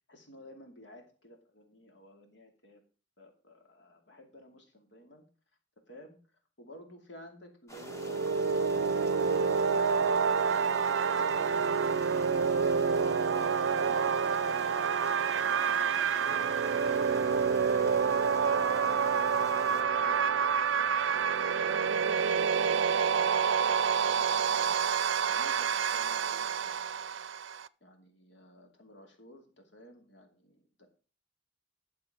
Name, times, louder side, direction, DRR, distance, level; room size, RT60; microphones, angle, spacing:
voice 1, 0.1-2.8 3.2-5.2 5.9-10.8 11.1-16.5 17.1-26.8 27.1-30.9, left 1 dB, 75° left, 4 dB, 2.5 m, -53 dB
sound 1, 7.7-19.8, left 1 dB, 15° left, 1.2 m, -48 dB
sound 2, 7.8-27.7, right 6 dB, 90° right, 0.5 m, -28 dB
12.0 x 6.8 x 4.9 m, 0.38 s
head